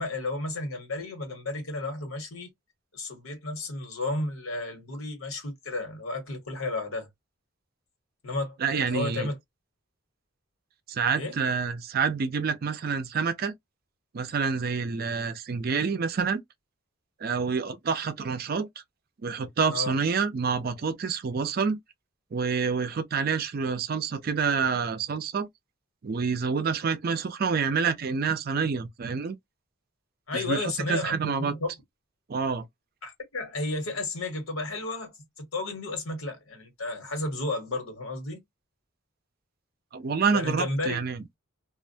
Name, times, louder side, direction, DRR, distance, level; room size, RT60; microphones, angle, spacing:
voice 1, 0.0-2.5 2.9-7.1 8.2-9.4 11.1-11.4 19.7-19.9 30.3-31.7 33.0-38.4 40.3-41.0, left 2 dB, 90° left, 1.3 m, -32 dB
voice 2, 8.6-9.3 10.9-13.5 14.1-16.4 17.2-18.7 19.2-21.8 22.3-25.5 26.0-29.4 30.3-31.5 32.3-32.6 39.9-41.2, right 5 dB, 45° right, 0.4 m, -27 dB
2.4 x 2.1 x 2.6 m
head